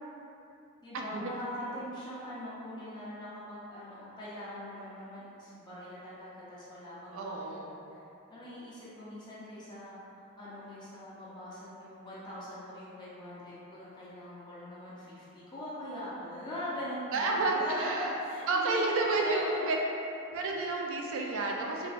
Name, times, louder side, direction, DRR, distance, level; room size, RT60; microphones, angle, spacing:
voice 1, 0.8-19.8, left 1 dB, 20° left, -9 dB, 0.5 m, -42 dB
voice 2, 7.1-7.8 17.1-18.1 18.5-19.8 20.3-21.9, right 3 dB, 60° right, 0 dB, 0.3 m, -30 dB
3.1 x 2.1 x 2.5 m, 2.8 s
head